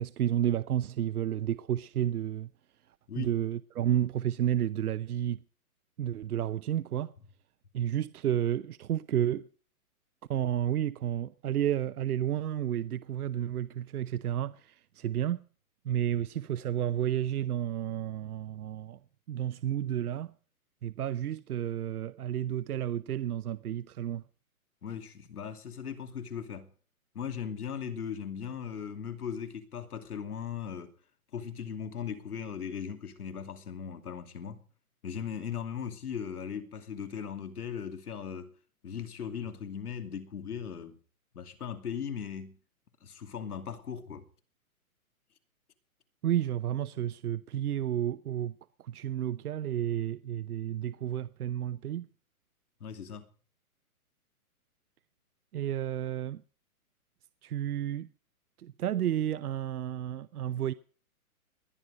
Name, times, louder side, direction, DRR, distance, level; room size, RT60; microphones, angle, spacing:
voice 1, 0.0-2.5 3.2-5.4 6.0-7.1 7.7-9.5 10.3-15.4 15.8-19.0 19.3-20.3 20.8-24.2 46.2-52.1 55.5-56.4 57.4-58.1 58.6-60.7, right 11 dB, 80° right, 0.8 m, -31 dB
voice 2, 24.8-26.7 27.1-30.9 31.3-34.6 35.0-38.5 38.8-41.0 41.3-42.6 43.0-44.3 52.8-53.3, left 7 dB, 80° left, 2.7 m, -38 dB
20.0 x 10.5 x 5.2 m
hypercardioid pair, 175°, 44 cm